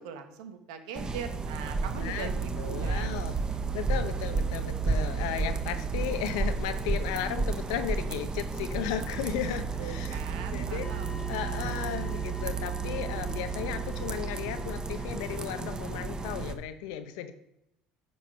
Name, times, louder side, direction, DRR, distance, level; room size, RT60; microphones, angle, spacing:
voice 1, 0.0-3.1 3.8-4.3 9.8-11.6, right 7 dB, 90° right, 6 dB, 1.3 m, -42 dB
sound 1, 1.0-16.5, right 4 dB, 25° right, 0.9 m, -32 dB
voice 2, 1.9-3.4 3.7-10.2 10.5-10.9 11.3-17.3, left 10 dB, 85° left, 10 dB, 0.9 m, -35 dB
sound 2, 10.8-16.5, left 4 dB, 20° left, 0.9 m, -45 dB
9.4 x 4.7 x 5.8 m, 0.83 s
supercardioid pair, 90°, 3 cm